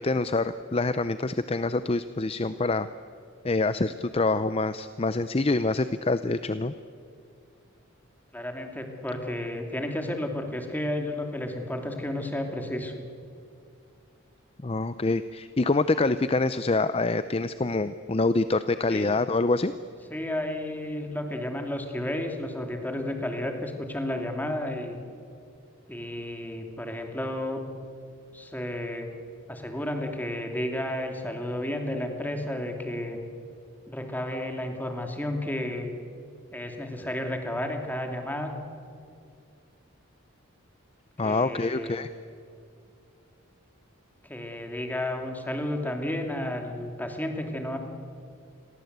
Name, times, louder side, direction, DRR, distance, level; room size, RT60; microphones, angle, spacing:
voice 1, 0.0-2.9 3.4-6.7 14.6-19.7 41.2-42.1, left 3 dB, 30° left, 12 dB, 0.6 m, -26 dB
voice 2, 8.3-12.9 18.9-19.1 20.1-25.0 25.9-27.6 28.3-29.1 29.5-33.2 33.9-35.9 36.5-38.6 41.2-42.1 44.3-47.8, left 1 dB, 10° left, 4 dB, 2.7 m, -32 dB
29.5 x 22.5 x 8.1 m, 2.4 s
head